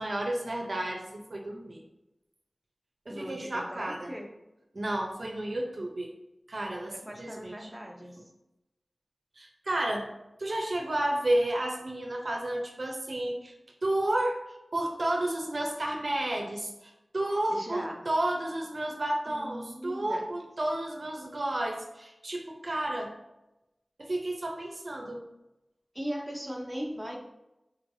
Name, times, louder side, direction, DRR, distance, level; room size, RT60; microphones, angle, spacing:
voice 1, 0.0-1.8 3.1-4.1 4.7-6.1 6.5-7.7 9.4-10.1 10.4-13.5 13.8-23.1 24.0-25.2, right 1 dB, 55° right, 1 dB, 0.6 m, -31 dB
voice 2, 3.1-4.3 6.9-8.3 17.5-18.0 19.3-20.2 25.9-27.2, equal, 10° right, 0 dB, 0.7 m, -39 dB
4.0 x 3.1 x 2.6 m, 0.91 s
wide cardioid pair, 55°, 0 cm